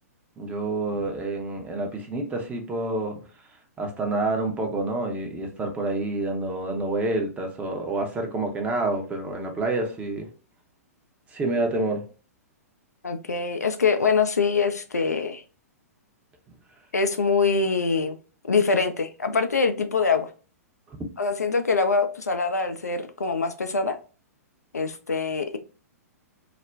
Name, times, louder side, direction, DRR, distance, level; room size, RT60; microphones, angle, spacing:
voice 1, 0.4-3.2 3.8-10.3 11.3-12.0, right 2 dB, 15° right, 0.6 m, -28 dB
voice 2, 13.0-15.4 16.9-18.2 18.5-20.3 21.2-24.0 24.7-25.6, left 4 dB, 85° left, 0.4 m, -24 dB
2.4 x 2.1 x 3.2 m
figure-of-eight pair, 110°, 9 cm